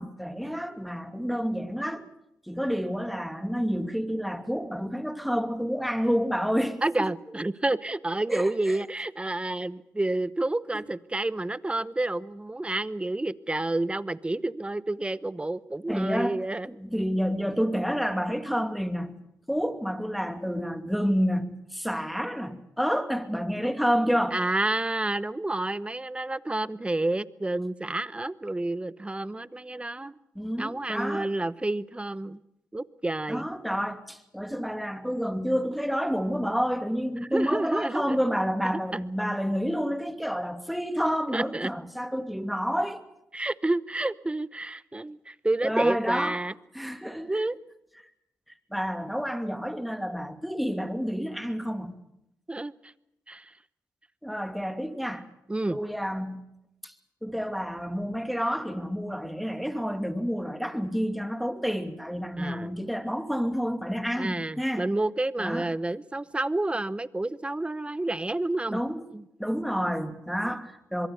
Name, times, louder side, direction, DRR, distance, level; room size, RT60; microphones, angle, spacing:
voice 1, 0.0-2.1 2.5-7.1 8.3-8.8 10.7-10.8 15.9-16.4 16.7-19.2 19.5-24.4 30.3-31.3 33.3-43.0 45.6-46.4 46.7-47.4 48.7-52.0 54.2-55.3 55.7-56.4 56.8-56.9 57.2-64.9 65.4-65.7 68.7-69.0 69.4-71.1, equal, ahead, 2.6 m, -29 dB
voice 2, 6.8-16.7 24.3-30.1 30.6-32.4 32.7-33.5 37.3-38.2 38.6-39.0 41.3-41.7 43.3-46.5 47.3-47.6 52.5-52.7 53.3-53.5 55.5-55.8 62.4-62.7 64.2-68.8 69.1-69.2, right 2 dB, 20° right, 0.9 m, -29 dB
24.0 x 22.5 x 6.9 m
supercardioid pair, 45°, 6 cm